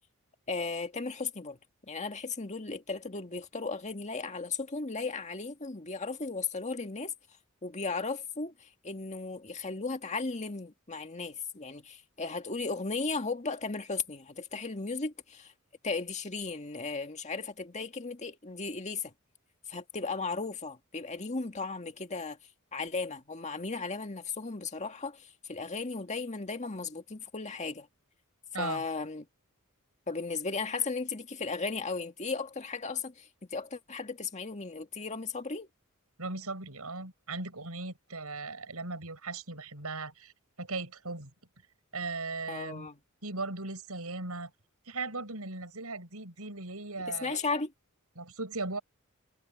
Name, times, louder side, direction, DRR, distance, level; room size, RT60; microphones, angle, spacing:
voice 1, 0.5-1.6 1.9-7.1 7.6-15.5 15.8-19.1 19.7-22.4 22.7-27.9 28.6-29.3 30.1-35.7 42.5-43.0 47.1-47.7, left 4 dB, 30° left, 1.9 m, -36 dB
voice 2, 36.2-40.3 40.6-41.3 41.9-42.9 43.2-44.5 44.9-47.4 48.2-48.8, right 3 dB, 80° right, 6.2 m, -38 dB
head